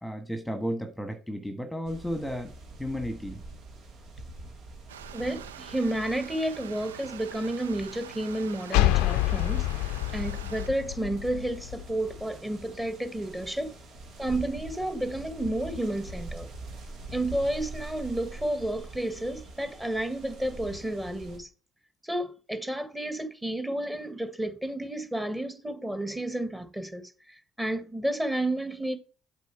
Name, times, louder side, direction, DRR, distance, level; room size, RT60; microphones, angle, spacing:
voice 1, 0.0-2.5 2.8-3.4, equal, 5° left, 1.4 m, -33 dB
sound 1, 1.8-21.4, right 2 dB, 65° right, 2.0 m, -45 dB
Stream, 4.9-10.7, right 10 dB, 85° right, 0.3 m, -45 dB
voice 2, 5.1-13.8 14.2-16.5 17.1-21.5 22.0-29.0, right 1 dB, 10° right, 1.6 m, -31 dB
sound 2, 8.7-12.2, left 17 dB, 75° left, 0.5 m, -27 dB
8.2 x 4.3 x 4.5 m
hypercardioid pair, 55°, 0 cm